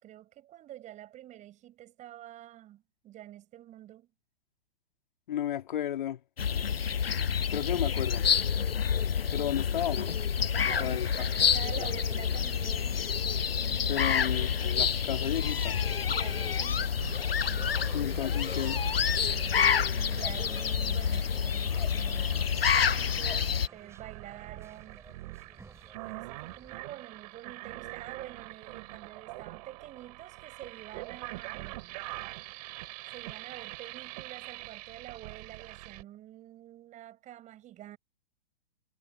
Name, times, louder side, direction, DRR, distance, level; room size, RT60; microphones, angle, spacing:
voice 1, 0.0-4.1 9.7-9.9 10.5-13.0 13.6-14.3 16.1-17.0 19.9-25.0 26.0-32.0 33.1-38.0, right 13 dB, 25° right, 4.9 m, -47 dB
voice 2, 5.3-6.2 7.5-8.2 9.3-10.1 10.6-11.1 11.8-11.9 13.9-15.8 17.9-18.8, left 11 dB, 55° left, 3.0 m, -33 dB
sound 1, 6.4-23.7, left 7 dB, 85° left, 0.6 m, -28 dB
Violin player in suburban train Moscow - Petushki XY mics, 9.1-26.8, right 4 dB, 10° right, 6.2 m, -57 dB
sound 2, 17.0-36.0, right 21 dB, 45° right, 4.1 m, -44 dB
figure-of-eight pair, 110°, 29 cm